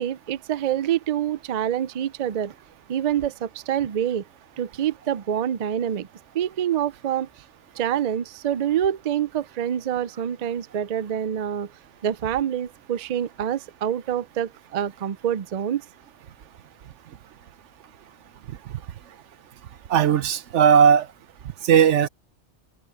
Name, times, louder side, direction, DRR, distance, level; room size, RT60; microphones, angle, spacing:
voice 1, 0.0-2.5 2.9-4.2 4.6-6.1 6.3-7.3 7.8-11.7 12.0-15.8, right 10 dB, 55° right, 0.4 m, -26 dB
voice 2, 19.9-21.1 21.6-22.1, right 8 dB, 85° right, 1.1 m, -17 dB
omnidirectional pair, 1.2 m